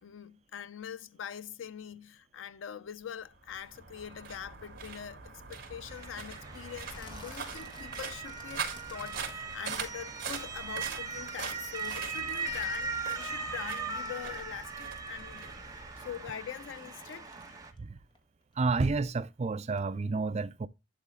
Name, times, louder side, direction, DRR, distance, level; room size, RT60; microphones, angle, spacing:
voice 1, 0.0-17.5, left 8 dB, 90° left, 0.4 m, -43 dB
sound 1, 3.3-16.7, right 5 dB, 50° right, 3.4 m, -43 dB
Motor vehicle (road) / Siren, 5.9-17.7, right 4 dB, 20° right, 1.5 m, -39 dB
sound 2, 6.9-10.5 10.9-15.7 16.0-18.7 19.0-19.4 19.8-19.9, left 2 dB, 25° left, 1.5 m, -55 dB
voice 2, 18.6-20.7, right 3 dB, 35° right, 0.4 m, -30 dB
11.5 x 4.0 x 3.7 m
head